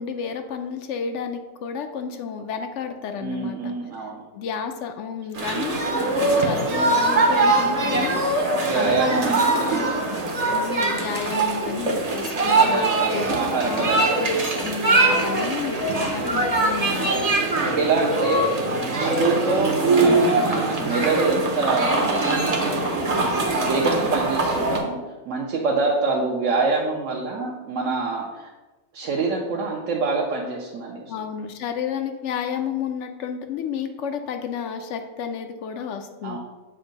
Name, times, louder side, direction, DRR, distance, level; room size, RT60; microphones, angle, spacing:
voice 1, 0.0-3.7 4.3-8.2 8.7-9.4 10.5-12.9 13.1-13.4 13.6-17.3 31.1-36.4, left 6 dB, 65° left, 7 dB, 0.8 m, -31 dB
voice 2, 3.2-4.2 8.6-10.5 12.6-14.2 17.5-18.6 19.0-22.1 22.7-22.9 23.6-25.0 25.3-28.5 28.9-31.0 36.2-36.4, right 3 dB, 65° right, -2 dB, 1.0 m, -25 dB
sound 1, 5.3-24.8, right 2 dB, 35° right, 0.7 m, -22 dB
7.2 x 2.6 x 5.1 m, 1.2 s
omnidirectional pair, 1.4 m